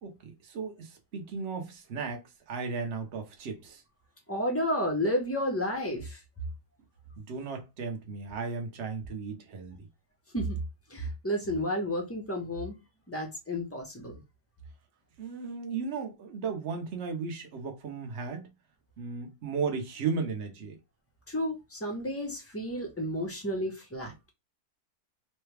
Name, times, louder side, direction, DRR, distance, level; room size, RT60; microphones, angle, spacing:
voice 1, 0.0-3.8 7.3-9.9 15.2-18.5 19.0-20.8, right 5 dB, 50° right, 1.0 m, -35 dB
voice 2, 4.3-6.2 10.3-10.6 10.9-12.8 13.1-14.2 21.3-24.1, equal, 15° left, 0.6 m, -31 dB
3.2 x 2.2 x 3.2 m
omnidirectional pair, 1.7 m